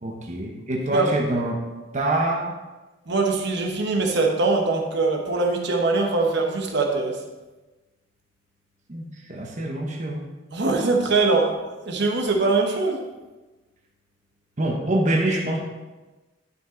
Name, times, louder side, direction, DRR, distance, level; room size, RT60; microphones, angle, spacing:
voice 1, 0.0-1.6 1.9-2.5 8.9-10.3 14.6-15.6, right 1 dB, 40° right, -1 dB, 1.0 m, -25 dB
voice 2, 3.1-7.2 10.5-13.0, right 3 dB, 65° right, 1 dB, 1.2 m, -22 dB
11.0 x 5.7 x 3.8 m, 1.2 s
head